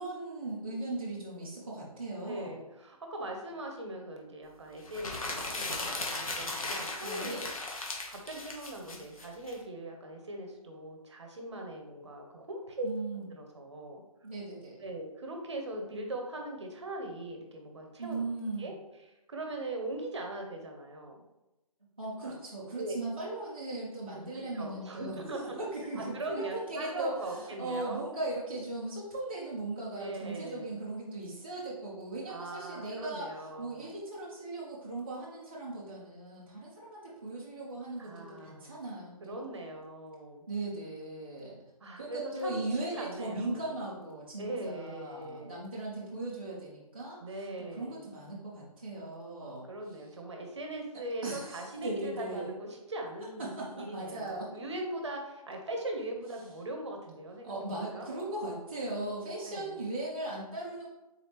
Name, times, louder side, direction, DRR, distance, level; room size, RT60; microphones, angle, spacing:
voice 1, 0.0-2.6 7.0-7.4 12.8-13.3 14.2-14.8 18.0-18.7 22.0-25.2 25.6-33.3 33.6-39.4 40.5-41.6 42.0-50.0 51.2-52.5 53.4-54.5 57.4-60.9, right 2 dB, 15° right, -9 dB, 0.4 m, -38 dB
voice 2, 2.3-7.5 7.8-12.9 13.2-14.0 14.8-18.2 18.6-18.7 19.3-21.2 22.2-22.4 22.8-23.1 24.1-25.6 26.0-28.0 29.9-30.8 32.3-33.9 38.0-38.8 39.2-40.4 41.8-43.7 44.4-45.6 47.2-48.1 49.4-58.1 59.5-59.7, right 1 dB, 50° right, 2 dB, 0.8 m, -40 dB
sound 1, 4.8-9.5, left 2 dB, 65° left, 1.0 m, -37 dB
3.9 x 3.4 x 2.9 m, 0.99 s
hypercardioid pair, 175°, 19 cm